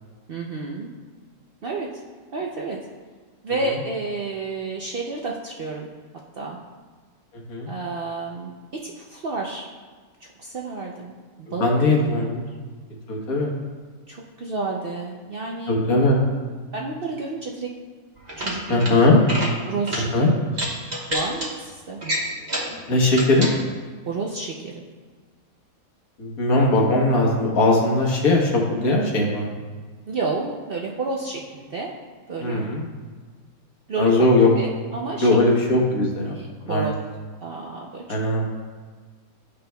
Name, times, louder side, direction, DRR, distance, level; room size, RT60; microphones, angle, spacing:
voice 1, 0.3-0.9 1.6-1.9 2.3-2.8 3.4-5.9 6.4-6.6 7.7-8.5 8.8-9.7 10.2-12.3 14.1-15.8 16.7-17.7 18.4-19.3 19.7-20.4 21.1-22.0 24.1-24.8 30.1-31.9 32.3-32.7 33.9-34.3 34.6-35.3 36.3-36.9 37.4-38.2, right 3 dB, 55° right, -1 dB, 0.6 m, -30 dB
voice 2, 7.3-7.7 11.6-12.4 13.1-13.5 15.7-16.2 18.7-19.2 20.1-20.3 22.9-23.5 26.2-29.5 32.4-32.8 34.0-34.5 35.2-36.4 36.7-36.9 38.1-38.5, left 2 dB, 75° left, -1 dB, 1.6 m, -19 dB
sound 1, 18.2-18.9 19.2-19.5 19.9-20.0 20.5-21.5 22.0-22.7 23.1-23.5, equal, 30° right, 1.3 m, -28 dB
11.5 x 5.2 x 2.2 m, 1.5 s
omnidirectional pair, 1.5 m